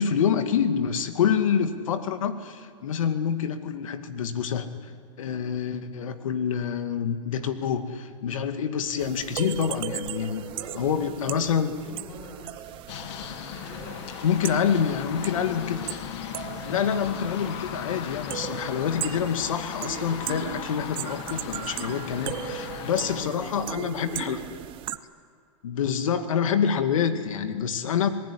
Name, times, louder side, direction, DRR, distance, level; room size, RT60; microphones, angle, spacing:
voice 1, 0.0-4.7 5.2-10.4 10.8-11.7 14.2-16.1 16.6-24.4 25.6-28.1, left 7 dB, 85° left, 8 dB, 2.2 m, -27 dB
sound 1, 9.0-25.0, right 14 dB, 30° right, 0.8 m, -38 dB
voice 2, 10.2-12.8 13.2-15.2 16.3-17.2 22.8-24.7, equal, 10° left, -5 dB, 5.2 m, -45 dB
sound 2, 12.9-23.2, left 10 dB, 55° left, 1.9 m, -37 dB
26.5 x 19.5 x 10.0 m, 2.1 s
supercardioid pair, 145°, 17 cm